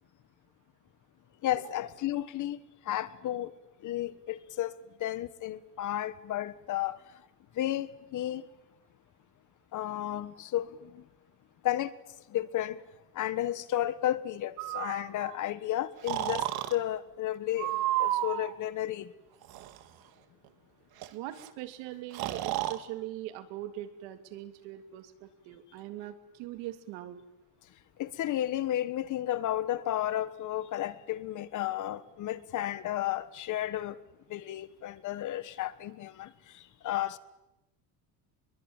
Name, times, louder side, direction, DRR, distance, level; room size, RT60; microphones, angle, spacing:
voice 1, 1.4-2.6 2.8-3.5 3.8-4.7 5.0-7.0 7.5-8.4 9.7-11.0 11.6-11.9 12.3-12.8 13.1-19.1 28.0-34.0 34.3-37.2, left 13 dB, 45° left, 1.5 m, -33 dB
Breathing, 14.6-15.4 16.1-16.7 17.6-18.5 19.4-19.8 21.0-21.1 21.3-21.5 22.1-22.8, right 14 dB, 60° right, 1.9 m, -32 dB
voice 2, 21.1-27.2, right 14 dB, 90° right, 3.1 m, -41 dB
25.0 x 22.5 x 9.0 m
cardioid pair, 155°, 41 cm